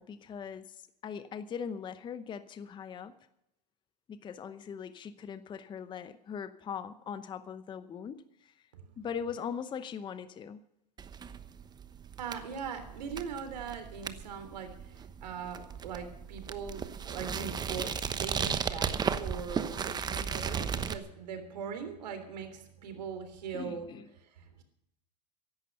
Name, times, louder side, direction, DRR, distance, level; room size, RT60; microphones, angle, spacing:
voice 1, 0.0-3.2 4.1-8.7 9.0-10.7 23.5-24.1, left 7 dB, 20° left, 12 dB, 0.8 m, -40 dB
sound 1, 11.0-21.0, right 6 dB, 20° right, 1.0 m, -35 dB
voice 2, 12.2-23.9 24.2-24.6, right 6 dB, 80° right, 7 dB, 3.4 m, -41 dB
15.5 x 11.5 x 5.4 m, 0.81 s
hypercardioid pair, 115°, 21 cm